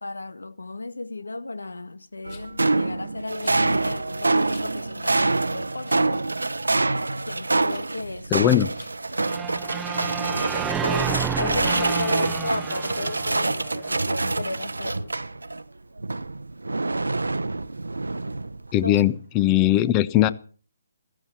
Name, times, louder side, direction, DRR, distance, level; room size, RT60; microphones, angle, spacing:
voice 1, 0.0-6.3 7.3-8.5 10.8-15.2 18.8-19.0, left 2 dB, 80° left, 1.7 m, -34 dB
Rattle, 2.3-2.6 3.4-3.6 4.4-4.7 5.2-5.3 5.8-6.1 6.4-6.9 7.6-7.9 8.7-8.9, left 7 dB, 40° left, 5.5 m, -51 dB
sound 1, 2.3-15.6 16.0-18.7, right 2 dB, 80° right, 0.8 m, -26 dB
voice 2, 8.3-8.7 18.7-20.3, left 13 dB, 20° left, 1.0 m, -19 dB
sound 2, 9.2-14.2, right 8 dB, 10° right, 0.7 m, -31 dB
15.5 x 14.5 x 5.9 m
figure-of-eight pair, 145°, 0 cm